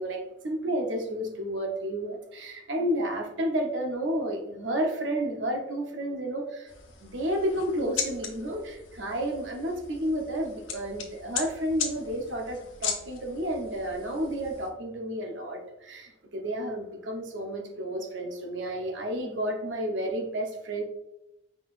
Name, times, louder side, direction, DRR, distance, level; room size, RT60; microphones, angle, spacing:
voice 1, 0.0-6.7 7.0-20.8, right 1 dB, 65° right, 3 dB, 0.8 m, -31 dB
sound 1, 6.7-14.7, left 6 dB, 70° left, 0.8 m, -38 dB
4.5 x 3.8 x 2.5 m, 0.90 s
head